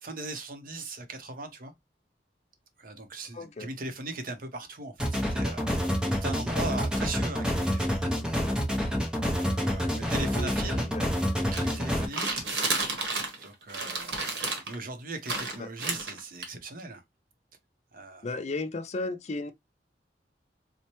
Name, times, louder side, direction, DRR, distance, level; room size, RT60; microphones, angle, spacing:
voice 1, 0.0-1.7 2.8-8.2 9.4-10.9 11.5-12.5 13.4-17.0 17.9-18.3, right 2 dB, 55° right, 0.7 m, -39 dB
voice 2, 3.3-3.7 10.3-11.1 15.6-15.7 18.2-19.5, left 2 dB, 40° left, 0.5 m, -35 dB
sound 1, 5.0-12.1, equal, 5° right, 0.6 m, -28 dB
sound 2, 11.5-13.4 13.7-14.7 15.2-16.4, right 3 dB, 75° right, 1.2 m, -31 dB
4.2 x 2.1 x 2.9 m
head